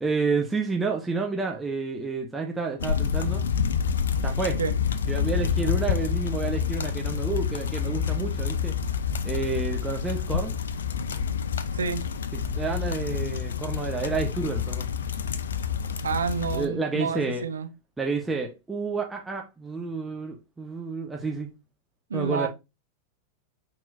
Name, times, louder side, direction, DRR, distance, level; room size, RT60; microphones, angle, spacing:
voice 1, 0.0-3.4 4.2-4.6 5.1-8.8 9.2-10.5 12.5-14.9 16.5-17.5 18.0-21.5 22.1-22.5, right 4 dB, 10° right, 1.2 m, -30 dB
sound 1, 2.8-16.7, left 7 dB, 65° left, 0.6 m, -28 dB
voice 2, 16.0-17.7 22.1-22.5, right 6 dB, 70° right, 0.9 m, -29 dB
8.7 x 4.2 x 2.6 m
figure-of-eight pair, 90°, 0 cm